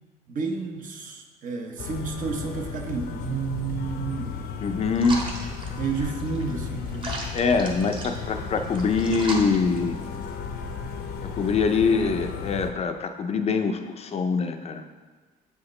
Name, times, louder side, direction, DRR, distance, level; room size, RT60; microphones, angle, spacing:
voice 1, 0.3-4.9 5.7-7.3, right 5 dB, 50° right, 3 dB, 0.9 m, -31 dB
sound 1, 1.8-12.7, left 5 dB, 75° left, 0.7 m, -34 dB
voice 2, 4.6-5.2 7.3-10.0 11.3-14.8, left 4 dB, 40° left, 7 dB, 0.5 m, -24 dB
sound 2, 5.0-10.4, right 2 dB, 30° right, 1.2 m, -38 dB
7.9 x 4.8 x 3.2 m, 1.3 s
cardioid pair, 110°, 17 cm